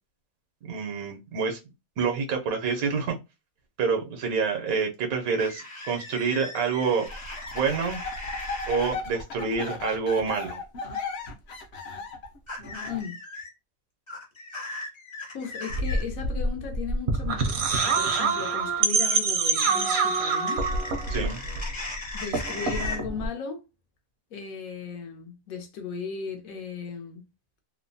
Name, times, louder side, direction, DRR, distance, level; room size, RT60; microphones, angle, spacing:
voice 1, 0.6-1.6 2.0-3.2 3.8-7.1 7.5-8.0 8.7-10.6 21.1-21.4, right 5 dB, 90° right, 1.1 m, -27 dB
sound 1, 5.4-8.9 10.9-11.2 12.5-13.5 14.1-16.0 19.1-23.0, left 2 dB, 30° left, 0.6 m, -38 dB
sound 2, 7.1-13.0, left 4 dB, 60° left, 0.8 m, -36 dB
voice 2, 12.9-13.2 15.3-20.6 22.1-23.6 24.3-27.3, left 6 dB, 85° left, 1.1 m, -36 dB
sound 3, 15.7-22.0 22.2-23.3, right 4 dB, 65° right, 0.7 m, -26 dB
2.9 x 2.0 x 2.6 m
omnidirectional pair, 1.5 m